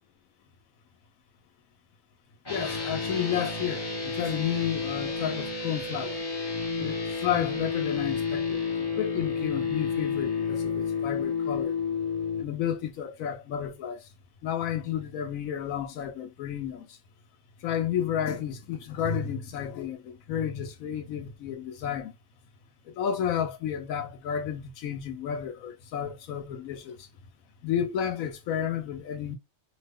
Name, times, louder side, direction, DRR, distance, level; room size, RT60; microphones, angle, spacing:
sound 1, 2.4-12.4, left 5 dB, 25° left, 0.6 m, -30 dB
voice 1, 2.5-6.3 6.8-11.7 12.4-14.1 14.4-17.0 17.6-22.1 22.8-27.1 27.6-29.4, left 9 dB, 80° left, 1.0 m, -32 dB
2.8 x 2.1 x 3.4 m
omnidirectional pair, 1.4 m